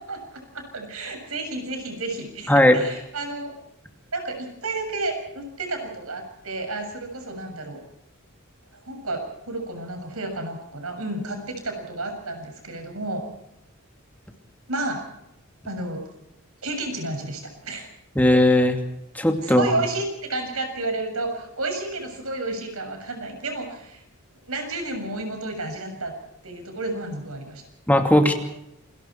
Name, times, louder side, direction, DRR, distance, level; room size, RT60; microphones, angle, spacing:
voice 1, 0.5-3.5 4.1-7.8 8.9-9.2 9.5-13.2 14.7-15.0 15.7-16.0 16.6-17.9 19.4-24.0 24.5-26.1 26.4-27.6, right 2 dB, 85° right, 5 dB, 7.1 m, -31 dB
voice 2, 18.2-18.8 19.1-19.7 27.9-28.3, left 1 dB, 5° left, 4 dB, 2.6 m, -17 dB
28.5 x 22.0 x 4.7 m, 0.84 s
head